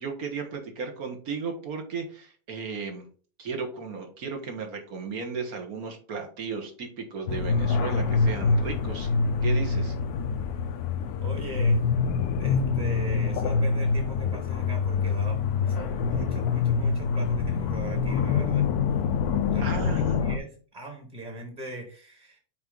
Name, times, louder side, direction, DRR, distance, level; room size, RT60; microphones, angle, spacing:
voice 1, 0.0-3.1 3.4-9.1 9.4-10.0 19.6-20.2, right 5 dB, 75° right, 4 dB, 1.8 m, -35 dB
sound 1, 7.3-20.4, left 5 dB, 90° left, 1.2 m, -25 dB
voice 2, 11.2-11.8 12.4-18.6 19.5-22.4, right 2 dB, 30° right, 3 dB, 1.4 m, -40 dB
6.2 x 4.7 x 3.9 m, 0.41 s
omnidirectional pair, 1.6 m